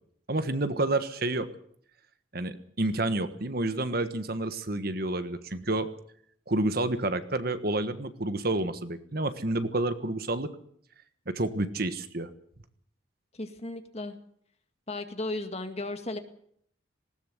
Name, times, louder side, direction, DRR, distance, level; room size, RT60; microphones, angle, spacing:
voice 1, 0.3-1.5 2.3-5.9 6.5-10.5 11.3-12.3, right 2 dB, 50° right, 11 dB, 1.4 m, -29 dB
voice 2, 13.3-14.2 14.9-16.2, left 2 dB, 30° left, 7 dB, 2.0 m, -35 dB
19.5 x 17.5 x 7.9 m, 0.65 s
head